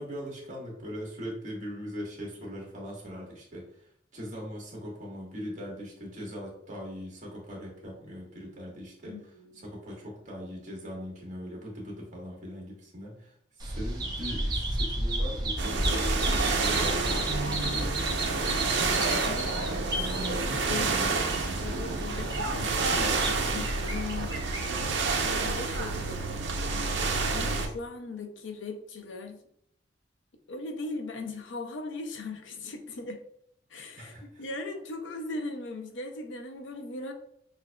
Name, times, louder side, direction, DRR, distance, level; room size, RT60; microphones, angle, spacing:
voice 1, 0.0-16.2 16.6-18.0 27.2-27.6 34.0-34.5, equal, 40° right, -2 dB, 1.3 m, -41 dB
voice 2, 9.1-9.7 19.2-26.5 27.3-29.4 30.5-33.2 33.7-37.1, left 3 dB, 85° left, 5 dB, 0.6 m, -39 dB
Bird vocalization bird call bird song, 13.6-25.0, right 1 dB, 20° right, 0.7 m, -33 dB
sound 1, 15.6-27.7, right 3 dB, 70° right, 0.6 m, -29 dB
5.7 x 2.6 x 2.2 m, 0.69 s
head